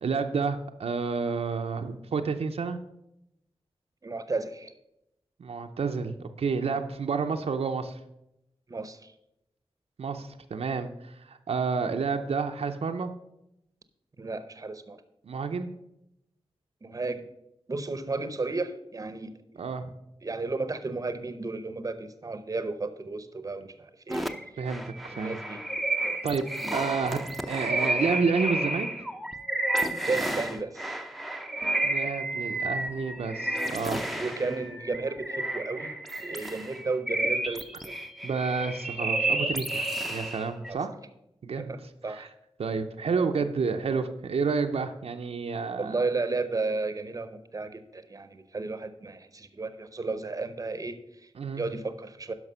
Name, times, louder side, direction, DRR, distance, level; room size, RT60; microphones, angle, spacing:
voice 1, 0.0-2.8 5.4-8.0 10.0-13.1 15.3-15.7 19.6-19.9 24.6-25.4 26.0-26.5 26.7-29.1 31.8-34.2 38.2-40.9 41.4-41.7 42.1-42.3 42.6-45.9 51.4-51.6, right 5 dB, 80° right, 5 dB, 0.7 m, -30 dB
voice 2, 4.0-4.7 8.7-9.1 14.2-15.0 16.8-17.2 17.7-19.3 20.2-24.3 25.1-25.6 26.6-26.8 30.1-30.9 34.2-35.9 36.2-37.9 40.7-40.8 41.6-42.3 45.8-52.3, right 3 dB, 35° right, 11 dB, 0.8 m, -33 dB
sound 1, 24.1-40.7, right 2 dB, ahead, 0.6 m, -31 dB
11.0 x 5.9 x 5.6 m, 0.84 s
wide cardioid pair, 95°, 10 cm